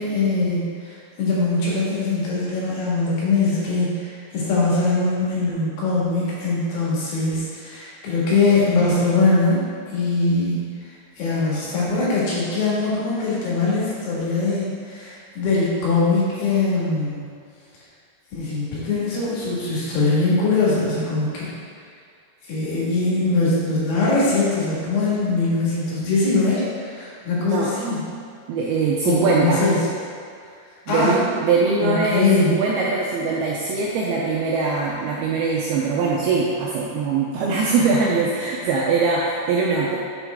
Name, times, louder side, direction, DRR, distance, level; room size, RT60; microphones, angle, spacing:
voice 1, 0.0-9.6 9.9-17.3 18.3-21.5 22.5-28.0 29.1-29.8 30.9-31.2 31.8-32.6, left 3 dB, 70° left, -7 dB, 3.8 m, -22 dB
voice 2, 28.5-29.6 30.9-40.0, right 4 dB, 80° right, -3 dB, 2.2 m, -22 dB
7.2 x 7.2 x 3.5 m, 2.3 s
omnidirectional pair, 5.1 m